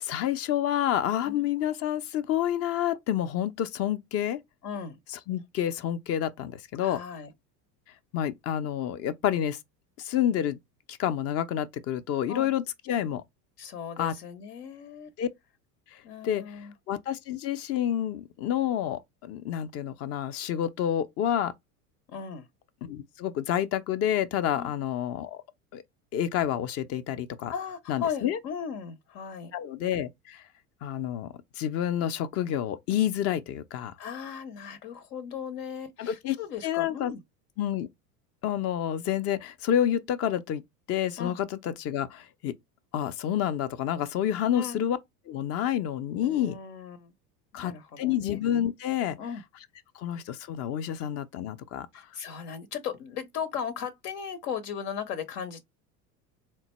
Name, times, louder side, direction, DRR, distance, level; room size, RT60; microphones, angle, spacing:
voice 1, 0.0-4.4 5.1-7.0 8.1-9.6 10.0-10.6 10.9-13.2 14.0-14.2 15.2-15.3 16.2-16.6 16.9-21.5 22.8-25.4 25.7-25.8 26.1-27.5 27.9-28.4 29.5-30.4 30.8-33.9 36.0-36.4 36.6-37.1 37.6-37.9 38.4-40.6 40.9-42.5 42.9-45.0 45.3-46.6 47.5-49.2 50.0-51.9, left 10 dB, 35° left, 0.4 m, -29 dB
voice 2, 4.6-5.0 6.8-7.3 12.3-12.5 13.6-15.1 16.0-16.7 22.1-22.5 24.5-24.7 27.5-29.5 34.0-37.2 41.2-41.3 44.5-44.8 46.2-47.1 47.5-48.4 49.2-49.4 51.9-55.6, left 7 dB, 75° left, 0.7 m, -37 dB
3.8 x 2.2 x 2.9 m
hypercardioid pair, 85°, 47 cm